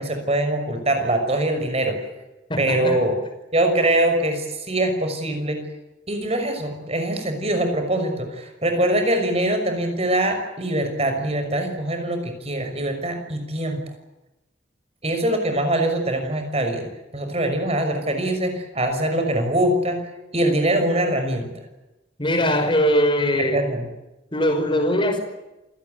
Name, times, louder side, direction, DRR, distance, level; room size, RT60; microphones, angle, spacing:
voice 1, 0.0-2.0 2.6-3.1 3.5-5.7 6.1-13.8 15.0-20.1 20.3-21.5 23.3-23.9, right 1 dB, 30° right, 6 dB, 6.1 m, -23 dB
voice 2, 2.5-3.0 22.2-23.6 24.3-25.2, equal, 25° left, 6 dB, 5.3 m, -21 dB
28.0 x 18.0 x 9.4 m, 0.98 s
head